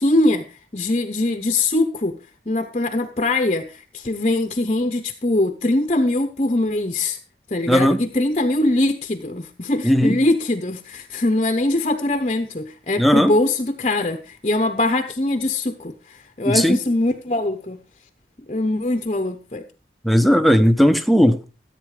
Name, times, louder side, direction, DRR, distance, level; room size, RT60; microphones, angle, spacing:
voice 1, 0.0-2.2 2.5-7.2 7.5-17.8 18.5-19.6, left 2 dB, 35° left, 0.9 m, -22 dB
voice 2, 7.7-8.0 9.8-10.2 13.0-13.3 16.4-16.8 20.0-21.4, equal, ahead, 0.9 m, -16 dB
14.5 x 8.4 x 4.9 m
head